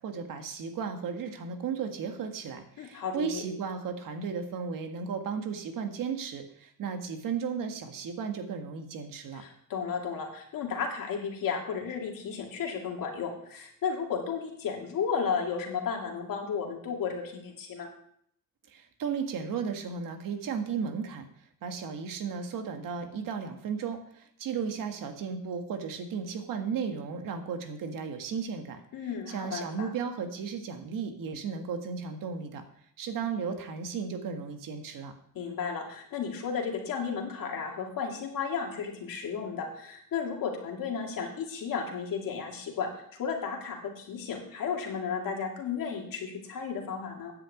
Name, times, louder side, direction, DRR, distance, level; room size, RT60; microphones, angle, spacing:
voice 1, 0.0-9.4 18.7-21.3 21.6-28.8 29.3-32.6 33.0-35.1, right 6 dB, 75° right, 6 dB, 1.7 m, -35 dB
voice 2, 2.8-3.4 9.3-17.9 28.9-29.9 35.3-42.9 43.2-47.3, left 6 dB, 75° left, 0 dB, 2.4 m, -33 dB
9.8 x 5.9 x 8.3 m, 0.67 s
cardioid pair, 125°, 33 cm